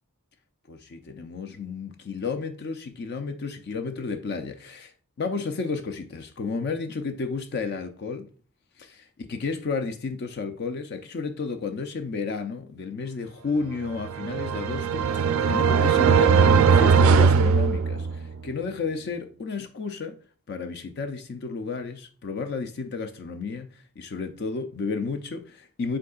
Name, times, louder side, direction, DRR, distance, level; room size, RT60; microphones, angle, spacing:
voice 1, 0.7-8.3 8.8-20.2 20.5-26.0, left 4 dB, 50° left, 0.4 m, -32 dB
sound 1, 13.9-18.4, right 6 dB, 70° right, 0.3 m, -19 dB
5.1 x 3.6 x 2.3 m
head